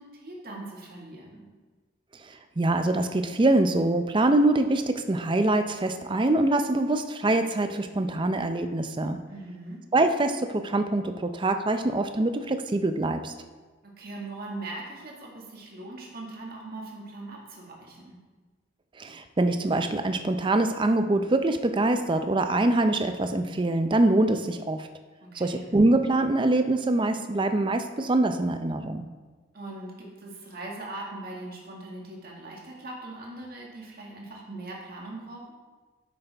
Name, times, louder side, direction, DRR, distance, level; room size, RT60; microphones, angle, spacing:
voice 1, 0.0-1.5 9.3-9.8 13.8-18.2 25.2-25.8 29.5-35.5, right 2 dB, 50° right, -2 dB, 1.9 m, -40 dB
voice 2, 2.6-9.2 9.9-13.3 19.0-24.9 25.4-29.1, right 2 dB, 25° right, 8 dB, 0.5 m, -24 dB
10.0 x 7.5 x 3.4 m, 1.3 s
head